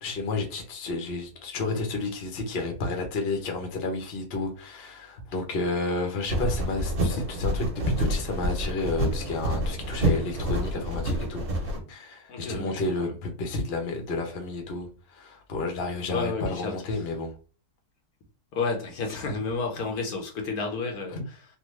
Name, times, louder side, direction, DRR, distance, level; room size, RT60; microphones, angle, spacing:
voice 1, 0.0-17.3 21.1-21.2, left 3 dB, 45° left, 1.0 m, -31 dB
sound 1, 6.3-11.8, equal, 50° right, 1.3 m, -28 dB
voice 2, 12.3-13.1 16.1-16.8 18.5-21.5, left 4 dB, 75° left, 1.3 m, -31 dB
3.5 x 2.4 x 3.0 m
omnidirectional pair, 1.7 m